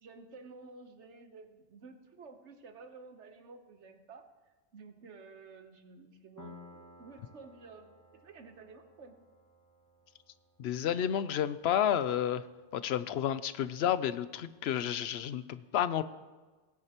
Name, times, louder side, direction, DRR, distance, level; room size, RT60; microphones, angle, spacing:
voice 1, 0.0-9.2, right 4 dB, 80° right, 6 dB, 1.4 m, -52 dB
Piano, 6.4-13.8, left 2 dB, 15° left, 1.2 m, -58 dB
voice 2, 10.6-12.4 12.7-16.0, left 10 dB, 70° left, 14 dB, 0.8 m, -31 dB
17.5 x 9.7 x 3.0 m, 1.3 s
omnidirectional pair, 1.2 m